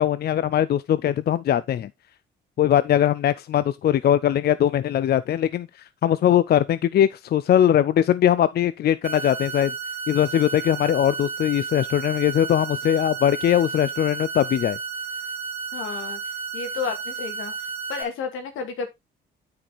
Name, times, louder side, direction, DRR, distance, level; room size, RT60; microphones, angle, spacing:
voice 1, 0.0-1.9 2.6-5.7 6.0-9.7 10.1-14.8, left 10 dB, 55° left, 0.5 m, -21 dB
sound 1, 9.0-18.0, right 5 dB, 35° right, 2.5 m, -32 dB
voice 2, 15.7-16.2 16.5-17.5 17.9-18.9, left 5 dB, 85° left, 2.4 m, -31 dB
9.0 x 4.8 x 4.1 m
cardioid pair, 90°, 20 cm